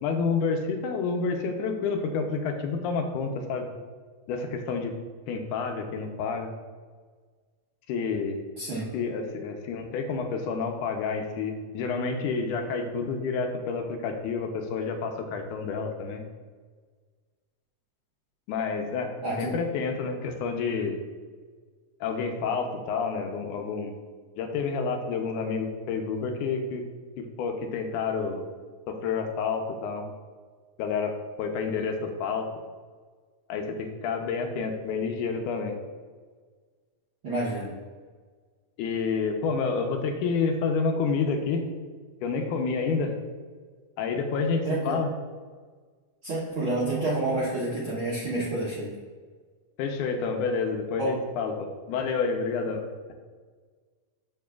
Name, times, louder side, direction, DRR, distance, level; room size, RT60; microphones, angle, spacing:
voice 1, 0.0-3.7 4.3-4.9 5.3-6.5 7.9-8.4 8.9-16.2 18.5-21.0 22.0-23.9 24.4-26.8 27.2-28.5 28.9-30.1 30.8-32.5 33.5-35.7 38.8-41.7 42.2-43.1 44.0-45.1 49.8-52.8, left 5 dB, 85° left, 4 dB, 2.2 m, -29 dB
voice 2, 8.6-8.9 19.2-19.5 37.2-37.7 44.7-45.0 46.2-48.9 51.0-51.2, right 2 dB, 65° right, -6 dB, 1.2 m, -29 dB
12.5 x 4.6 x 2.3 m, 1.5 s
omnidirectional pair, 3.6 m